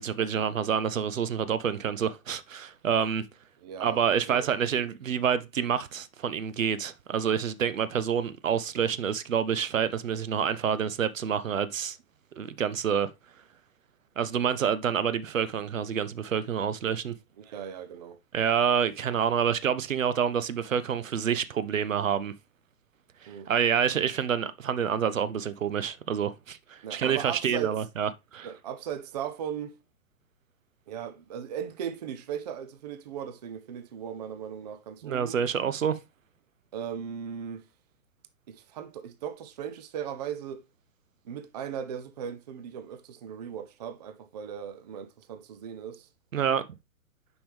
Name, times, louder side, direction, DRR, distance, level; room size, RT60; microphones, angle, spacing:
voice 1, 0.0-3.2 3.8-12.0 12.4-13.1 14.2-17.1 18.3-22.3 23.2-28.5 35.0-36.0 46.3-46.7, right 8 dB, 60° right, 0.8 m, -28 dB
voice 2, 3.6-4.5 4.8-4.9 17.4-18.2 23.3-23.5 26.8-27.8 28.4-29.8 30.9-35.4 36.7-37.7 38.5-40.6 41.2-46.1, right 8 dB, 30° right, 0.5 m, -38 dB
6.9 x 5.4 x 3.4 m
figure-of-eight pair, 120°, 43 cm